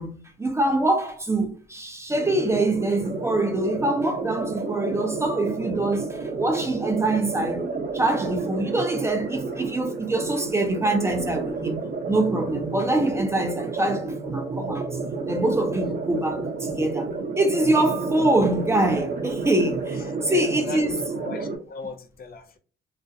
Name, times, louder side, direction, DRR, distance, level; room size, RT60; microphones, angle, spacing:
voice 1, 0.0-7.7 7.9-11.8 12.1-14.9 15.3-17.1 17.4-21.0, right 2 dB, 15° right, 0.4 m, -24 dB
sound 1, 2.1-21.6, right 4 dB, 45° right, 0.7 m, -31 dB
voice 2, 20.3-22.6, left 5 dB, 50° left, 0.5 m, -39 dB
2.4 x 2.1 x 2.6 m
cardioid pair, 90°, 20 cm